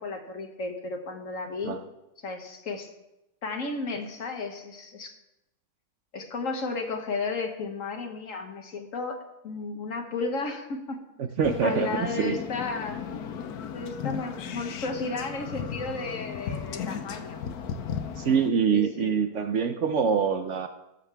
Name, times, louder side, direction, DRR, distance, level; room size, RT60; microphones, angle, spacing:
voice 1, 0.0-1.8 2.2-2.9 3.4-5.2 6.1-11.0 11.6-13.0 13.7-17.4 18.7-19.1, left 3 dB, 60° left, 4 dB, 1.6 m, -33 dB
sound 1, 11.4-18.5, left 7 dB, 90° left, 1.3 m, -36 dB
voice 2, 11.4-12.4 18.1-20.7, right 6 dB, 60° right, 8 dB, 0.9 m, -25 dB
20.0 x 6.7 x 3.4 m, 0.93 s
omnidirectional pair, 1.6 m